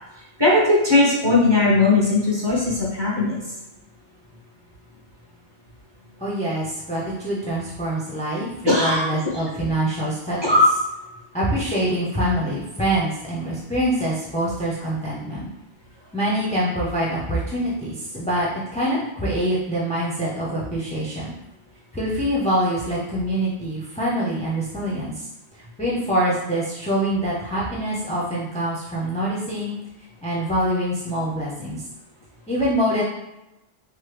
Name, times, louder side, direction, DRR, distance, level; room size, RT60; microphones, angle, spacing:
voice 1, 0.4-3.4 8.7-9.0 10.4-10.7, left 2 dB, 30° right, -5 dB, 0.7 m, -18 dB
voice 2, 6.2-10.5 11.3-15.5 16.1-21.3 21.9-25.3 25.8-29.7 30.2-31.8 32.5-33.0, right 1 dB, 10° left, -6 dB, 0.3 m, -25 dB
3.1 x 2.0 x 3.2 m, 0.94 s
omnidirectional pair, 1.0 m